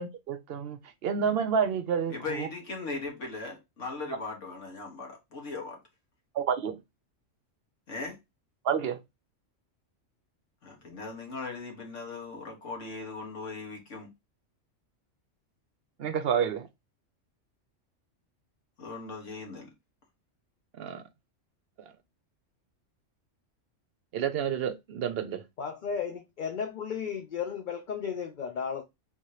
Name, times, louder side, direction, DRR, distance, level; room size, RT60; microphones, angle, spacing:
voice 1, 0.0-2.5 6.3-6.8 8.6-9.0 16.0-16.7 20.8-21.0 24.1-25.4, right 7 dB, 60° right, 0.8 m, -29 dB
voice 2, 2.1-5.8 7.9-8.2 10.6-14.1 18.8-19.7, left 3 dB, 75° left, 1.8 m, -39 dB
voice 3, 25.6-28.8, left 7 dB, 50° left, 0.7 m, -34 dB
3.6 x 2.8 x 4.7 m
omnidirectional pair, 1.3 m